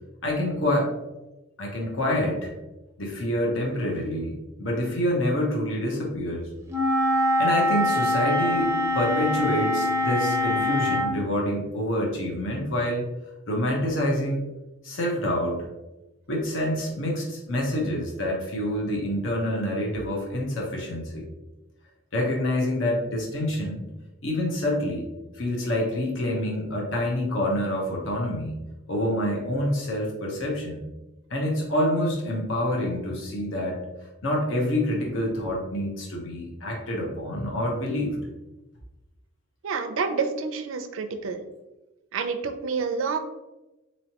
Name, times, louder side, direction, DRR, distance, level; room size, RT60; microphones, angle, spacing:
voice 1, 0.2-0.9 1.6-2.5 3.0-6.5 7.4-13.0 13.5-14.4 14.8-15.6 16.3-21.2 22.1-23.8 24.2-25.0 25.3-28.6 28.9-30.8 31.3-33.8 34.2-38.2, left 1 dB, 75° left, -1 dB, 0.9 m, -27 dB
Wind instrument woodwind instrument, 6.7-11.1, left 1 dB, 15° right, 0.5 m, -24 dB
voice 2, 39.6-41.4 42.1-43.2, right 5 dB, 85° right, 8 dB, 0.5 m, -28 dB
4.1 x 3.1 x 2.9 m, 1.0 s
head